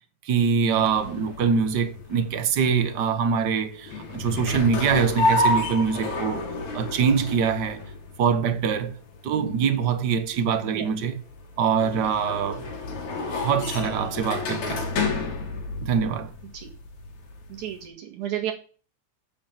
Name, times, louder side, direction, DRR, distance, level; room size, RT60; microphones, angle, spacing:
voice 1, 0.2-6.5 6.7-7.8 8.2-9.0 9.2-11.2 11.6-12.7 13.4-14.8 15.8-16.3, right 6 dB, 55° right, 1.2 m, -24 dB
sound 1, 0.8-17.8, left 2 dB, 75° left, 3.5 m, -31 dB
voice 2, 17.5-18.5, right 11 dB, 85° right, 3.3 m, -32 dB
9.7 x 5.5 x 7.4 m
omnidirectional pair, 3.3 m